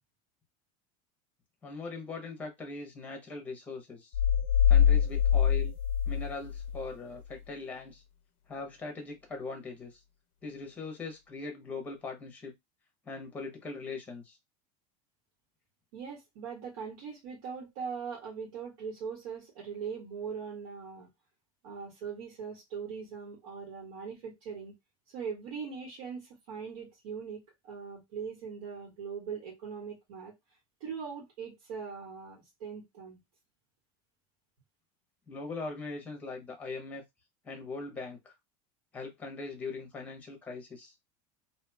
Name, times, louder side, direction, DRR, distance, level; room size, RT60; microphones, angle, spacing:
voice 1, 1.6-4.2 4.7-5.8 6.1-8.0 8.5-10.0 10.4-12.5 13.0-14.4 35.3-37.0 37.4-38.3 38.9-40.9, left 3 dB, 10° left, 0.8 m, -41 dB
sound 1, 4.1-6.9, left 8 dB, 85° left, 0.5 m, -24 dB
voice 2, 15.9-21.1 21.6-24.7 25.1-30.3 30.8-33.2, right 6 dB, 90° right, 1.6 m, -41 dB
3.0 x 2.6 x 2.2 m
cardioid pair, 170°, 17 cm